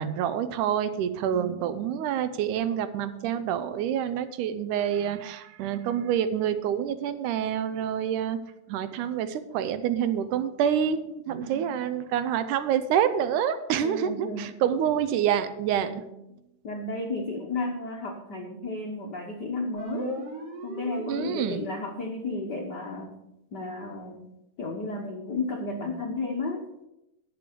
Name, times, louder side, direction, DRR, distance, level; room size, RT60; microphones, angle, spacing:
voice 1, 0.0-8.4 8.7-15.9 21.1-21.6, right 9 dB, 75° right, 12 dB, 2.1 m, -27 dB
voice 2, 1.3-1.7 11.4-11.8 13.8-14.5 15.8-16.1 16.6-20.3 20.6-23.2 23.5-24.2 24.6-26.7, left 3 dB, 75° left, 1 dB, 0.9 m, -33 dB
sound 1, 19.8-21.7, right 3 dB, 55° right, 2.4 m, -38 dB
10.0 x 6.9 x 6.8 m, 0.88 s
omnidirectional pair, 3.8 m